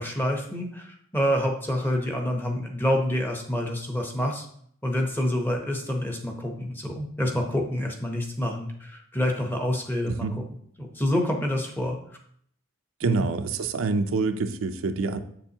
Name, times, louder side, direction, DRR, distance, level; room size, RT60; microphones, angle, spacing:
voice 1, 0.0-4.5 4.8-10.3 10.8-12.0 13.0-13.3, left 1 dB, 10° left, 2 dB, 0.8 m, -27 dB
voice 2, 10.1-10.4 13.0-15.2, right 4 dB, 75° right, 8 dB, 0.5 m, -26 dB
7.3 x 6.9 x 2.8 m, 0.65 s
head